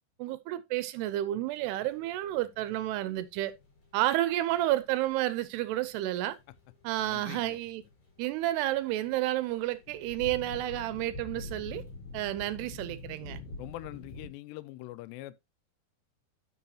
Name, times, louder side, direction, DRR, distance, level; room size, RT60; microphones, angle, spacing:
voice 1, 0.2-3.5 3.9-6.4 6.8-7.8 8.2-11.8 12.1-13.4, right 14 dB, 80° right, 2.6 m, -31 dB
sound 1, 1.6-14.3, left 2 dB, 45° left, 5.8 m, -47 dB
voice 2, 7.0-7.6 13.6-15.4, left 17 dB, 85° left, 2.8 m, -43 dB
11.0 x 6.3 x 2.8 m
omnidirectional pair, 4.9 m